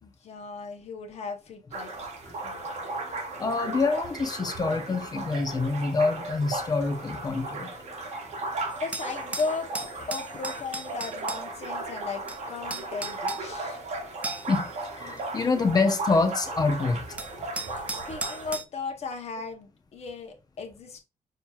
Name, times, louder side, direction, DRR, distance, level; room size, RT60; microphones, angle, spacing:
voice 1, 0.0-1.9 2.4-2.7 8.8-9.7 10.1-13.8 17.9-21.0, left 4 dB, 50° left, 1.0 m, -36 dB
sound 1, 1.7-18.6, right 2 dB, 55° right, 0.9 m, -36 dB
voice 2, 3.4-7.7 14.5-14.6 15.0-17.0, left 3 dB, 30° left, 0.7 m, -26 dB
sound 2, 8.7-11.4 12.3-12.4 12.7-13.4 14.2-14.6 15.2-15.3 16.4-16.5 17.2-18.6, right 2 dB, 10° right, 0.3 m, -36 dB
6.3 x 2.8 x 2.3 m
wide cardioid pair, 170°, 14 cm